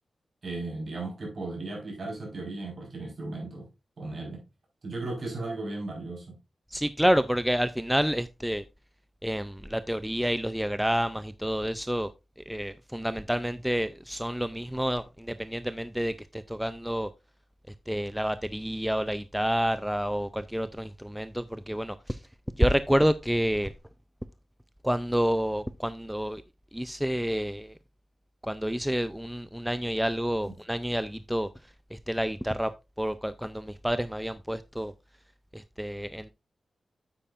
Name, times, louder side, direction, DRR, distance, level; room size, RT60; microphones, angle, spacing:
voice 1, 0.4-3.7 4.0-4.4 4.8-6.3 30.4-30.5, right 2 dB, 50° right, 4.6 m, -36 dB
voice 2, 6.7-8.6 9.2-12.1 12.5-17.1 17.9-22.2 22.6-23.7 24.8-26.4 26.7-27.7 28.4-31.5 31.9-32.7 33.0-34.9 35.5-36.3, equal, 5° right, 0.3 m, -29 dB
9.0 x 8.6 x 2.5 m
wide cardioid pair, 150°, 0 cm